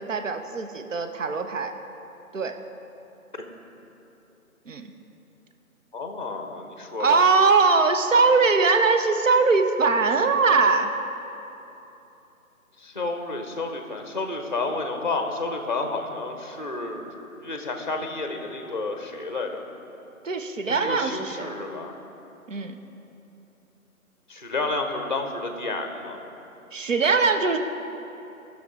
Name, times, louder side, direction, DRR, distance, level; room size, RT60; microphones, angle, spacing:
voice 1, 0.0-1.7 2.3-2.6 4.7-4.9 7.0-10.9 20.2-21.5 22.5-22.8 26.7-27.6, right 4 dB, 60° right, 7 dB, 0.7 m, -21 dB
voice 2, 5.9-7.2 12.8-19.6 20.7-22.0 24.3-26.2, left 3 dB, 35° left, 4 dB, 0.6 m, -31 dB
13.0 x 6.3 x 3.6 m, 3.0 s
figure-of-eight pair, 155°, 44 cm